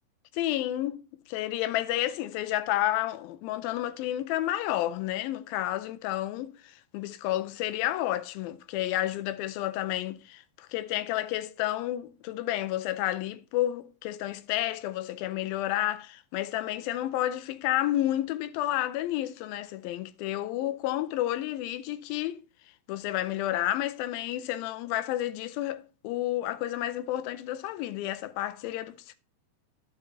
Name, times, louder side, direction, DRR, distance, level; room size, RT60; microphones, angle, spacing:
voice 1, 0.3-22.4 22.9-29.0, left 14 dB, 85° left, 2.4 m, -31 dB
11.5 x 5.6 x 2.7 m
omnidirectional pair, 4.2 m